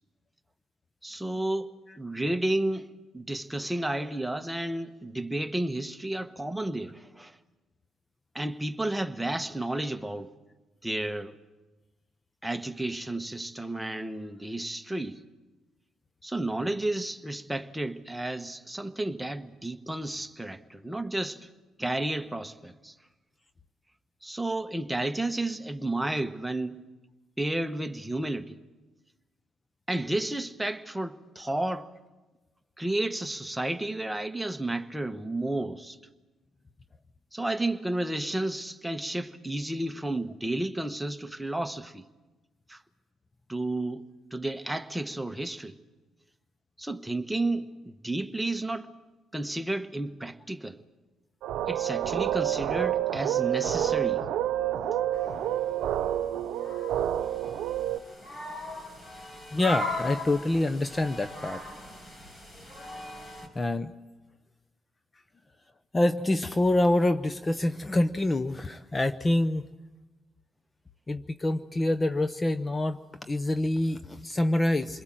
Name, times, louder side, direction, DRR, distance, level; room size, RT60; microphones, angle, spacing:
voice 1, 1.0-7.4 8.3-10.3 10.8-11.3 12.4-15.2 16.2-21.5 21.8-22.9 24.2-26.8 27.4-28.6 29.9-31.9 32.8-36.0 37.3-42.1 42.7-42.8 43.5-44.0 44.3-45.8 46.8-48.9 49.3-50.8 51.7-54.2, right 1 dB, 5° right, 1.2 m, -32 dB
sound 1, 51.4-58.0, right 11 dB, 85° right, 0.9 m, -28 dB
sound 2, 55.1-55.7 56.6-63.5, left 2 dB, 40° left, 5.4 m, -39 dB
voice 2, 59.5-61.6 63.5-63.9 65.9-69.7 71.1-73.0 73.3-75.0, left 1 dB, 20° left, 0.8 m, -26 dB
28.0 x 21.5 x 7.7 m
cardioid pair, 90°, 0 cm